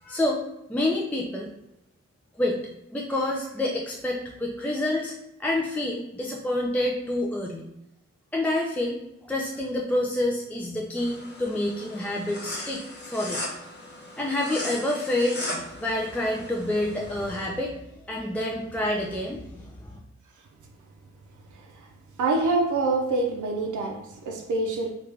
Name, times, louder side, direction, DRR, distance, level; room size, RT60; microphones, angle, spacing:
voice 1, 0.0-0.4 0.7-1.5 2.4-2.6 2.9-7.7 8.3-13.5 14.2-15.5 15.8-17.7 18.1-20.0, left 1 dB, 5° left, -2 dB, 0.3 m, -28 dB
sound 1, 11.0-17.4, left 1 dB, 35° left, 0.7 m, -38 dB
voice 2, 22.2-24.9, right 3 dB, 90° right, 1 dB, 0.5 m, -25 dB
3.3 x 2.4 x 3.2 m, 0.85 s
wide cardioid pair, 85°, 29 cm